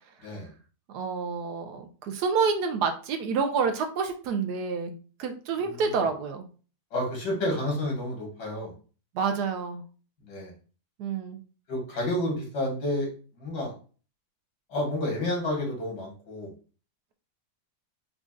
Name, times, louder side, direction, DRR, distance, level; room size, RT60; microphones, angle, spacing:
voice 1, 0.9-6.5 9.1-9.8 11.0-11.4, right 5 dB, 80° right, 6 dB, 1.2 m, -28 dB
voice 2, 6.9-8.7 10.2-10.5 11.7-13.1 13.4-13.7 14.7-16.5, left 1 dB, 90° left, -1 dB, 2.1 m, -30 dB
5.3 x 2.3 x 2.4 m, 0.37 s
omnidirectional pair, 1.7 m